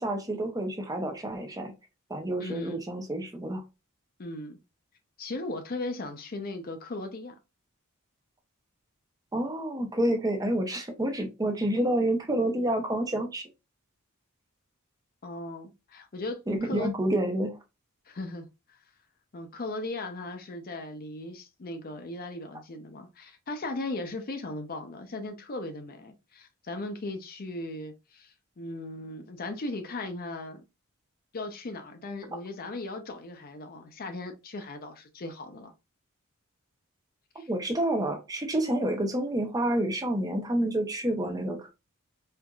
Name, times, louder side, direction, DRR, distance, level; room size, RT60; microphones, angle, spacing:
voice 1, 0.0-1.7 2.1-3.6 9.3-13.4 16.5-17.6 37.5-41.7, right 1 dB, 15° right, 0.6 m, -28 dB
voice 2, 2.4-2.8 4.2-4.6 5.2-7.4 15.2-16.9 18.1-18.5 19.3-30.6 31.3-35.7 37.4-37.5, left 2 dB, 40° left, 0.5 m, -37 dB
4.5 x 2.5 x 2.3 m
head